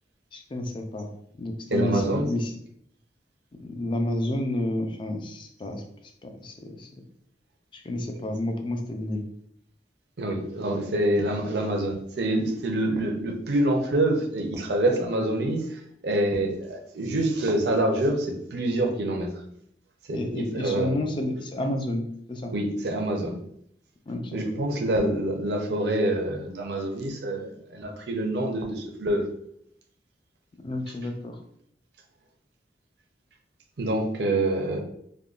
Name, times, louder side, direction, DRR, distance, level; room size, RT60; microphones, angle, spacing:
voice 1, 0.3-1.1 1.4-2.5 3.6-5.8 6.2-6.9 7.7-9.2 20.1-22.5 24.1-24.4 30.6-31.4, left 1 dB, 30° left, 4 dB, 0.4 m, -30 dB
voice 2, 1.7-2.3 10.2-19.3 20.1-21.0 22.5-23.4 24.3-29.2 33.8-34.8, right 1 dB, 65° right, 3 dB, 0.6 m, -26 dB
3.5 x 2.2 x 2.4 m, 0.70 s
head